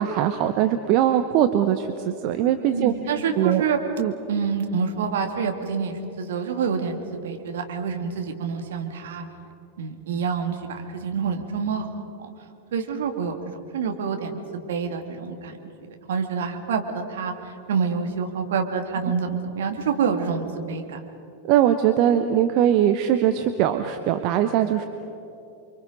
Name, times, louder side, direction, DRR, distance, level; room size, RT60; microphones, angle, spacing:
voice 1, 0.0-2.9 3.4-3.6 4.0-4.1 21.5-24.9, right 10 dB, 40° right, 8 dB, 1.0 m, -21 dB
voice 2, 2.7-3.8 4.3-9.3 9.8-11.9 12.2-12.3 12.7-15.6 16.1-21.0, right 6 dB, 60° right, 4 dB, 2.3 m, -27 dB
29.0 x 24.0 x 5.4 m, 2.8 s
figure-of-eight pair, 90°, 0 cm